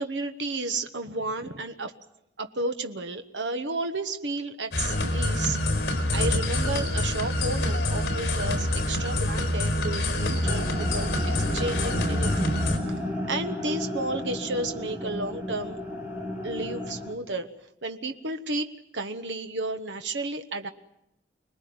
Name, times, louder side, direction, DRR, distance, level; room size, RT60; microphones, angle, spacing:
voice 1, 0.0-1.9 2.4-5.6 6.1-11.1 11.5-12.5 13.3-15.8 16.4-17.5 17.8-20.7, right 2 dB, 80° right, 7 dB, 1.3 m, -32 dB
sound 1, 4.7-12.8, left 1 dB, 60° left, 4.4 m, -26 dB
sound 2, 10.4-17.1, left 1 dB, 10° right, 3.5 m, -33 dB
25.5 x 20.0 x 9.5 m, 0.83 s
head